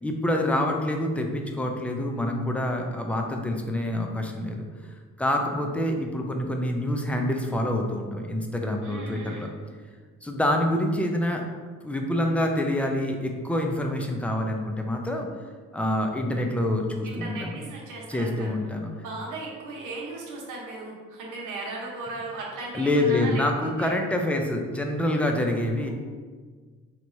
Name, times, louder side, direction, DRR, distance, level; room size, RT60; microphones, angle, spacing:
voice 1, 0.0-4.7 5.2-9.5 10.2-11.4 11.8-15.3 15.7-17.5 18.1-18.9 22.7-25.9, left 1 dB, 5° left, 2 dB, 0.5 m, -26 dB
voice 2, 8.8-9.5 17.0-18.5 18.9-23.9 25.8-25.9, right 3 dB, 85° right, -3 dB, 1.0 m, -37 dB
4.6 x 3.0 x 2.7 m, 1.5 s
cardioid pair, 90°, 30 cm